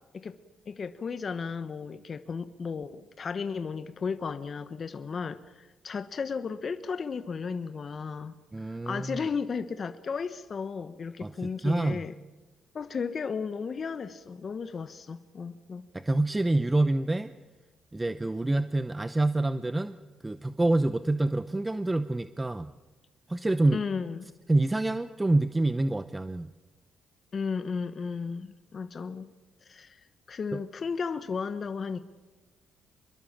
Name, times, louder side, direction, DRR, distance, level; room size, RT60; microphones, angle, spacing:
voice 1, 0.7-12.2 12.7-15.8 23.7-24.4 27.3-29.3 29.6-30.0 30.3-32.0, left 5 dB, 45° left, 10 dB, 1.1 m, -34 dB
voice 2, 8.5-9.2 11.2-12.0 15.9-17.3 17.9-20.0 20.2-22.7 23.3-23.8 24.5-26.5 30.5-30.6, right 2 dB, 15° right, 12 dB, 0.8 m, -27 dB
26.5 x 22.0 x 7.4 m, 1.2 s
cardioid pair, 90°, 0 cm